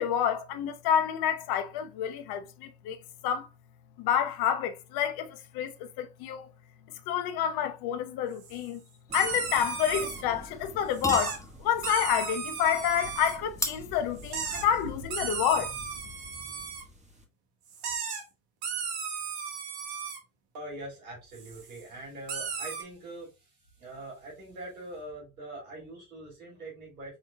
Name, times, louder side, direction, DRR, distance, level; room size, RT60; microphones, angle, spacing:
voice 1, 0.0-3.5 4.0-6.5 7.1-8.8 9.1-15.7, left 9 dB, 60° left, 1.0 m, -29 dB
sound 1, 8.4-8.6 9.1-10.2 10.9-11.4 11.8-13.4 14.2-14.6 15.1-16.8 17.7-18.2 18.6-20.2 21.3-21.8 22.3-22.8, right 6 dB, 60° right, 1.5 m, -35 dB
sound 2, 9.1-17.2, equal, 15° right, 1.4 m, -48 dB
sound 3, 10.6-17.0, left 1 dB, 5° left, 0.9 m, -40 dB
voice 2, 20.5-23.5 23.8-27.2, right 2 dB, 85° right, 3.1 m, -43 dB
5.7 x 3.7 x 2.2 m
hypercardioid pair, 65°, 42 cm